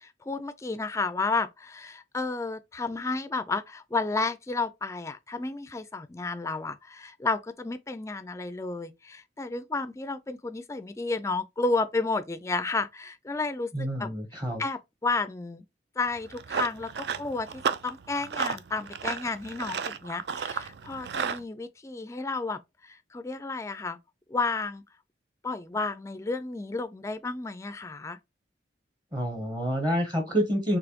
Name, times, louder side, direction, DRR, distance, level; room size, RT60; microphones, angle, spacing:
voice 1, 0.0-14.1 14.6-15.6 16.0-24.0 24.3-24.8 25.4-28.2, left 3 dB, 15° left, 0.3 m, -32 dB
voice 2, 13.7-14.6 29.1-30.8, equal, 25° right, 0.9 m, -28 dB
Run, 16.1-21.4, right 6 dB, 65° right, 0.4 m, -33 dB
4.1 x 2.9 x 2.8 m
head